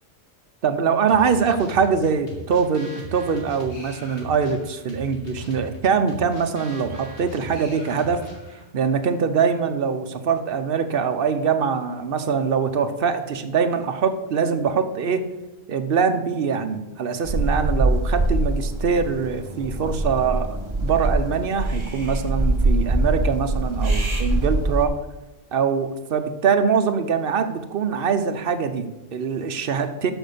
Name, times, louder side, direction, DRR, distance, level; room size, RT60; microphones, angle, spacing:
voice 1, 0.6-8.2 8.7-15.2 15.7-24.9 25.5-30.1, right 6 dB, 60° right, 9 dB, 0.9 m, -23 dB
sound 1, 1.1-8.7, right 3 dB, 85° left, 2.1 m, -40 dB
sound 2, 17.2-24.9, right 2 dB, 25° right, 1.2 m, -23 dB
6.2 x 6.2 x 6.7 m, 1.0 s
omnidirectional pair, 1.1 m